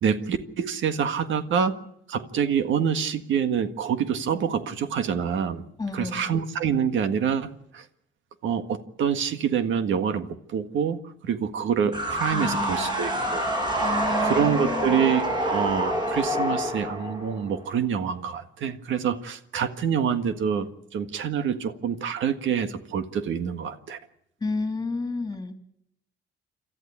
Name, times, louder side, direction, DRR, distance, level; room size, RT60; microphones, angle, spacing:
voice 1, 0.0-1.7 2.1-5.6 5.9-7.8 8.4-13.5 14.2-24.0, right 7 dB, 75° right, 8 dB, 1.7 m, -26 dB
voice 2, 5.8-6.3 12.3-13.3 13.8-15.0 24.4-25.5, left 3 dB, 20° left, 5 dB, 3.0 m, -31 dB
sound 1, 11.9-17.7, right 1 dB, 20° right, 6.8 m, -27 dB
27.0 x 14.0 x 8.3 m, 0.76 s
cardioid pair, 90°, 20 cm